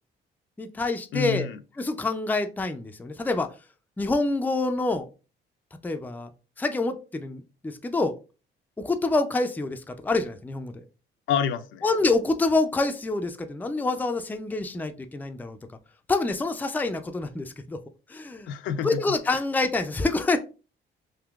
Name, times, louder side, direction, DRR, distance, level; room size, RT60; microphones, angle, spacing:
voice 1, 0.6-1.5 1.8-3.5 4.0-5.1 5.8-6.3 6.6-8.2 8.8-10.8 11.8-15.6 16.1-17.8 18.1-18.5 18.8-20.4, left 3 dB, 10° left, 7 dB, 0.4 m, -26 dB
voice 2, 1.1-1.6 11.3-11.9 18.5-19.0 19.3-19.4, left 7 dB, 75° left, 9 dB, 0.5 m, -28 dB
3.6 x 2.6 x 2.3 m, 0.32 s
cardioid pair, 90°, 20 cm